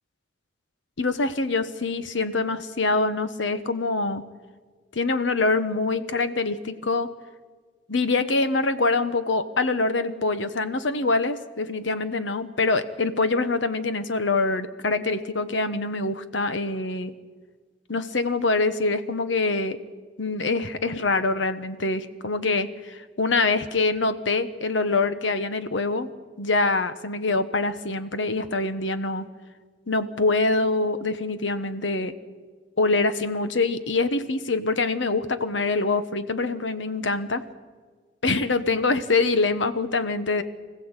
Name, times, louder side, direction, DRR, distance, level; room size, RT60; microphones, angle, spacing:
voice 1, 1.0-4.2 4.9-7.1 7.9-17.1 17.9-19.8 20.2-26.1 26.4-29.2 29.9-32.1 32.8-37.4 38.2-40.4, left 3 dB, 80° left, 11 dB, 1.2 m, -25 dB
24.5 x 15.5 x 8.2 m, 1.5 s
head